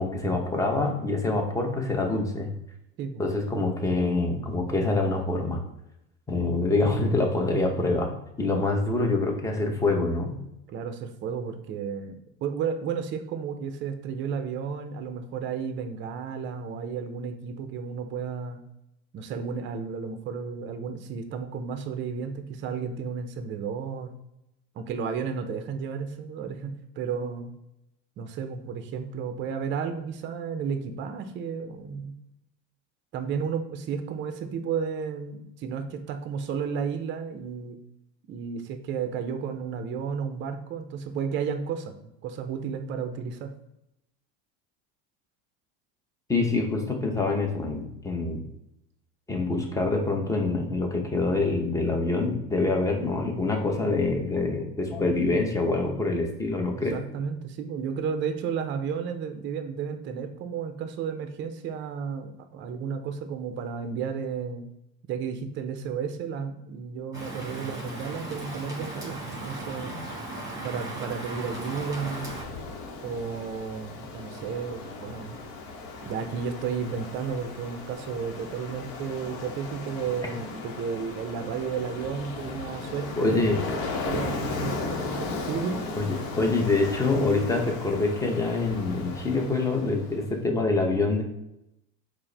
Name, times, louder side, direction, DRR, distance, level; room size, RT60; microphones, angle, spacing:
voice 1, 0.0-2.5 3.2-5.6 6.3-8.1 8.4-10.3 46.3-48.4 49.3-57.0 83.2-83.6 86.0-91.2, left 3 dB, 10° left, 2 dB, 0.7 m, -25 dB
voice 2, 10.7-18.6 19.1-24.1 24.8-27.5 28.2-32.1 33.1-37.8 38.3-43.5 56.9-64.6 65.1-69.9 70.6-72.3 73.0-75.4 76.0-85.8, right 6 dB, 35° right, 7 dB, 0.5 m, -33 dB
Rain, 67.1-72.4, right 2 dB, 10° right, 1.4 m, -37 dB
Ocean, 71.2-90.3, left 3 dB, 65° left, 0.8 m, -36 dB
4.6 x 2.0 x 3.3 m, 0.85 s
supercardioid pair, 100°, 33 cm